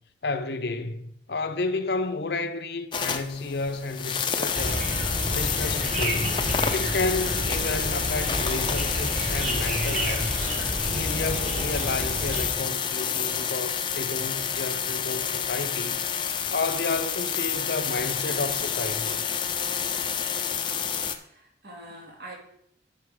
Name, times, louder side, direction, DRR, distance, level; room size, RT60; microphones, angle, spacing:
voice 1, 0.2-4.9 5.3-6.4 6.7-10.3 10.9-16.0 16.5-19.2, left 3 dB, 70° left, 0.7 m, -31 dB
sound 1, 2.9-21.2, left 7 dB, 25° left, 0.6 m, -29 dB
sound 2, 4.5-12.5, right 1 dB, 40° right, 2.3 m, -30 dB
voice 2, 21.2-22.3, right 1 dB, 65° right, 2.5 m, -45 dB
13.0 x 5.6 x 3.8 m
head